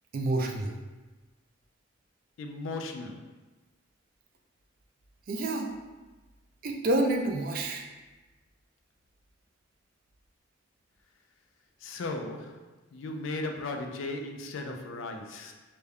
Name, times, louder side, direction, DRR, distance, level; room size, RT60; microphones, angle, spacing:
voice 1, 0.1-0.7 5.3-5.7 6.6-7.9, right 1 dB, 45° right, 3 dB, 0.3 m, -28 dB
voice 2, 2.4-3.3 11.8-12.6 12.9-15.5, left 2 dB, 75° left, 4 dB, 0.4 m, -36 dB
3.3 x 2.2 x 3.5 m, 1.2 s
head